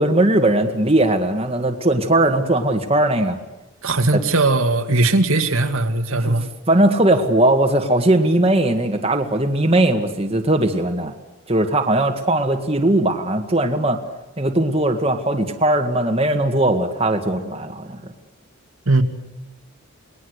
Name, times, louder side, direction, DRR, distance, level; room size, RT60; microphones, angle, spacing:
voice 1, 0.0-3.4 4.1-4.2 6.1-6.4 6.7-11.1 11.5-14.0 14.4-18.0, right 1 dB, 25° right, 1.8 m, -19 dB
voice 2, 3.8-6.5 18.9-19.0, right 2 dB, 70° right, 2.0 m, -18 dB
29.0 x 20.5 x 8.1 m
head